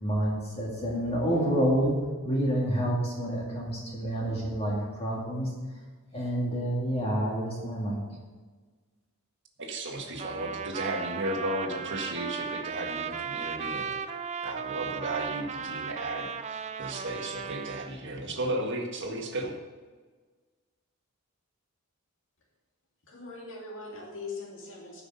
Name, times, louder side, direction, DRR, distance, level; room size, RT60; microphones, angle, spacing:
voice 1, 0.0-5.5 6.1-8.0, equal, 30° left, -4 dB, 2.1 m, -28 dB
voice 2, 9.6-14.0 14.4-19.5, right 1 dB, 55° right, 2 dB, 1.7 m, -34 dB
Trumpet, 10.2-17.9, right 6 dB, 30° right, 0.6 m, -36 dB
voice 3, 23.1-25.0, left 3 dB, 60° left, -2 dB, 2.3 m, -41 dB
13.5 x 6.0 x 5.5 m, 1.4 s
head